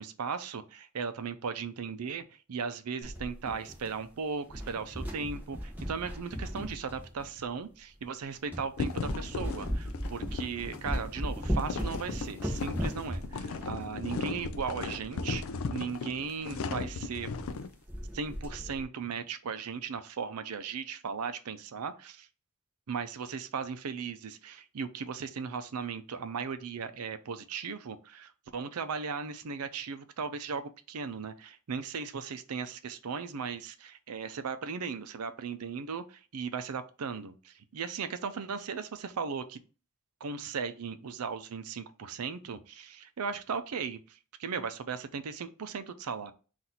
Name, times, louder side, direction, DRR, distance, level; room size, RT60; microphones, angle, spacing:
voice 1, 0.0-15.4 15.7-17.3 18.1-22.3 22.9-39.6 40.2-44.0 44.4-46.3, right 5 dB, 90° right, 11 dB, 0.5 m, -37 dB
sound 1, 3.0-4.1 4.4-7.4 8.0-8.1 8.5-8.7 9.0-15.1 15.4-15.5 15.7-15.8 16.2-16.4 16.8-17.0 17.2-17.6 17.9-18.8, equal, 10° right, 0.9 m, -37 dB
sound 2, 8.8-17.7, left 4 dB, 70° left, 0.4 m, -37 dB
4.0 x 2.5 x 4.2 m, 0.36 s
head